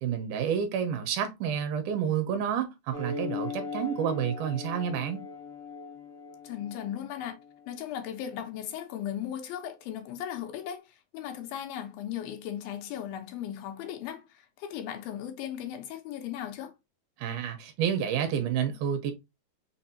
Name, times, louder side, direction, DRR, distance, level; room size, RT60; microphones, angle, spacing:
voice 1, 0.0-5.2 17.2-19.1, right 8 dB, 75° right, 2.2 m, -29 dB
sound 1, 2.9-7.9, left 4 dB, 45° left, 1.0 m, -39 dB
voice 2, 6.4-7.4 7.7-16.7, left 10 dB, 85° left, 2.7 m, -37 dB
5.8 x 2.6 x 2.7 m
omnidirectional pair, 4.1 m